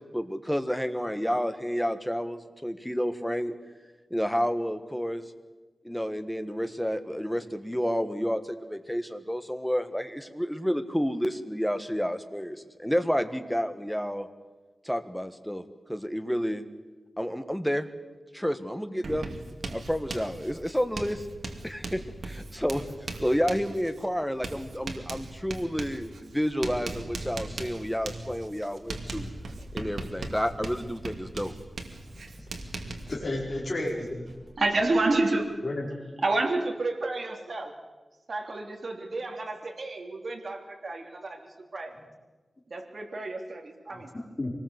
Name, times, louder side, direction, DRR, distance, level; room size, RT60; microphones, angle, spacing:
voice 1, 0.0-3.5 4.1-5.2 5.8-14.3 14.8-15.6 15.9-16.6 17.2-17.9 18.3-19.3 19.7-21.3 21.6-22.8 23.2-29.3 29.7-31.5, equal, ahead, 9 dB, 1.5 m, -30 dB
Writing, 19.0-33.2, right 2 dB, 70° right, 2.4 m, -39 dB
sound 1, 28.9-35.2, left 1 dB, 25° right, 5.3 m, -49 dB
voice 2, 33.1-34.2 35.6-35.8 43.9-44.5, left 1 dB, 30° left, -4 dB, 4.9 m, -32 dB
voice 3, 34.6-35.5 36.2-37.7 38.3-41.4 41.7-41.9 42.7-44.1, right 2 dB, 50° right, 3 dB, 3.1 m, -29 dB
25.0 x 19.5 x 8.2 m, 1.3 s
wide cardioid pair, 130°, 0 cm